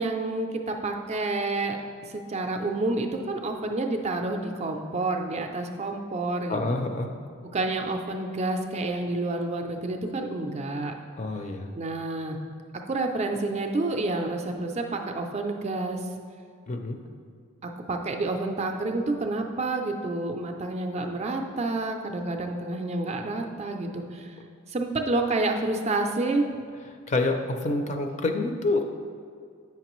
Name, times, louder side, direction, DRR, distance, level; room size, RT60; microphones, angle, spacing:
voice 1, 0.0-1.8 2.1-6.8 7.5-10.9 11.8-12.4 12.9-16.1 17.6-24.3 24.7-26.5, right 2 dB, 30° right, 4 dB, 0.4 m, -29 dB
voice 2, 6.5-7.1 11.2-11.7 16.7-17.0 27.1-28.9, left 2 dB, 30° left, 4 dB, 0.4 m, -27 dB
8.3 x 5.8 x 3.0 m, 2.2 s
head